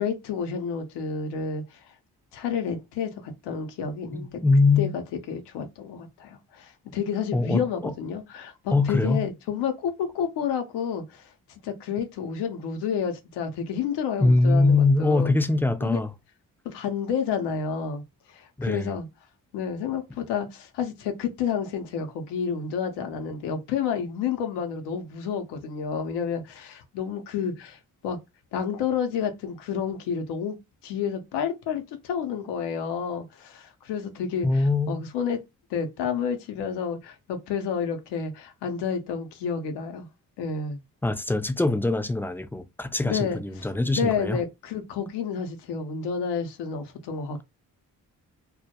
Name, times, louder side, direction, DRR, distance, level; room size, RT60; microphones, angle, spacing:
voice 1, 0.0-1.8 2.3-4.4 4.8-5.0 5.3-11.2 11.6-15.3 15.8-16.0 16.6-18.0 18.3-19.1 19.5-27.8 28.0-28.2 28.5-30.6 30.8-35.4 35.7-40.1 40.4-40.8 43.1-43.7 43.9-47.4, left 7 dB, 85° left, 0.6 m, -30 dB
voice 2, 4.1-4.9 7.3-7.9 8.7-9.3 14.2-16.1 18.6-18.9 34.4-35.1 41.0-44.4, left 3 dB, 5° left, 0.3 m, -23 dB
2.2 x 2.1 x 2.7 m
supercardioid pair, 45°, 40 cm